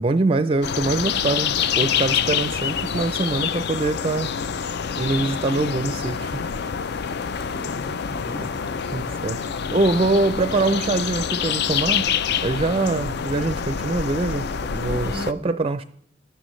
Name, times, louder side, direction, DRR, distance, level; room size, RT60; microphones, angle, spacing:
voice 1, 0.0-4.3 5.0-6.4 8.4-8.5 8.9-9.4 9.7-12.1 12.4-15.8, right 3 dB, 30° right, 0.4 m, -24 dB
sound 1, 0.6-15.3, left 7 dB, 55° left, 0.4 m, -26 dB
voice 2, 7.5-8.8 14.8-15.6, equal, 15° left, 1.4 m, -38 dB
15.5 x 11.5 x 3.1 m
head